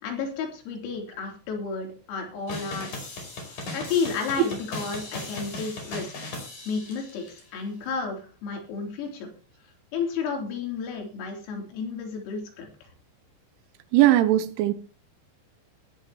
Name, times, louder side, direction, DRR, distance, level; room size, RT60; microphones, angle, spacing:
voice 1, 0.0-3.2 3.5-6.1 6.7-7.3 7.5-9.3 9.9-12.7, left 5 dB, 90° left, 6.1 m, -32 dB
sound 1, 2.5-7.4, left 2 dB, 40° left, 6.5 m, -37 dB
voice 2, 13.9-14.7, right 14 dB, 80° right, 3.1 m, -19 dB
20.0 x 11.5 x 3.0 m
omnidirectional pair, 5.9 m